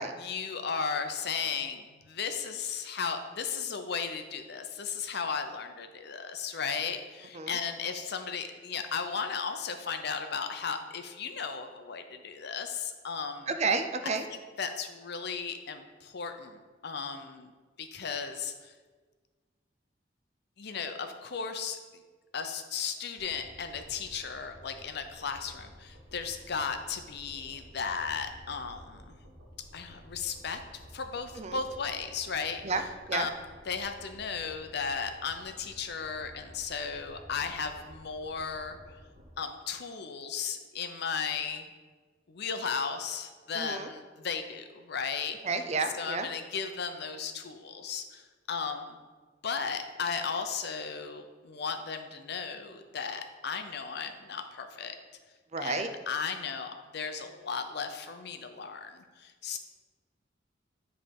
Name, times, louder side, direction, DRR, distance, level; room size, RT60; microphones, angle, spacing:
voice 1, 0.2-13.5 14.6-17.5 17.8-18.7 20.6-22.0 22.3-29.2 29.7-30.6 30.9-32.8 33.1-33.3 33.7-38.8 39.4-41.7 42.3-45.4 45.9-49.0 49.4-55.0 55.6-59.6, left 6 dB, 60° left, 7 dB, 0.6 m, -35 dB
voice 2, 13.5-14.2 31.3-31.6 32.6-32.8 33.1-33.3 43.5-43.9 45.4-46.3 55.5-55.9, right 4 dB, 40° right, 8 dB, 0.5 m, -31 dB
sound 1, 23.2-39.3, equal, 65° right, 1.4 m, -53 dB
9.9 x 3.3 x 5.3 m, 1.4 s
head